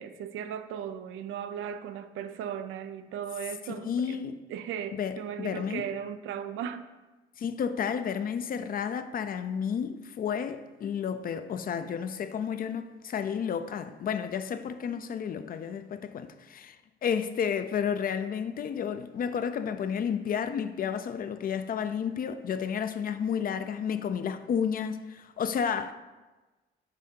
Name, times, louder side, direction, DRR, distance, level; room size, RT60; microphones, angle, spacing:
voice 1, 0.0-4.2 4.5-6.9, right 8 dB, 85° right, 0.4 m, -37 dB
voice 2, 3.7-4.4 4.9-5.9 7.4-16.8 17.0-25.9, left 7 dB, 45° left, 0.4 m, -31 dB
6.7 x 2.7 x 5.2 m
cardioid pair, 90°, 20 cm